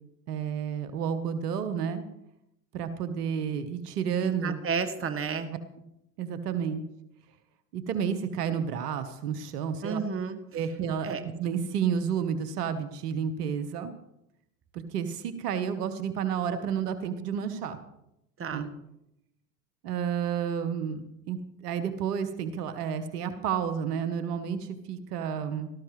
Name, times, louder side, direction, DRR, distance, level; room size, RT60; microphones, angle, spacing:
voice 1, 0.3-2.0 2.7-4.6 6.2-6.8 7.7-10.0 10.5-13.9 14.7-17.8 18.5-18.7 19.8-25.7, right 7 dB, 80° right, 10 dB, 1.2 m, -31 dB
voice 2, 4.2-5.5 9.8-10.4 11.0-11.2 18.4-18.7, right 6 dB, 30° right, 8 dB, 1.4 m, -31 dB
18.5 x 13.0 x 3.2 m, 0.83 s
hypercardioid pair, 80°, 46 cm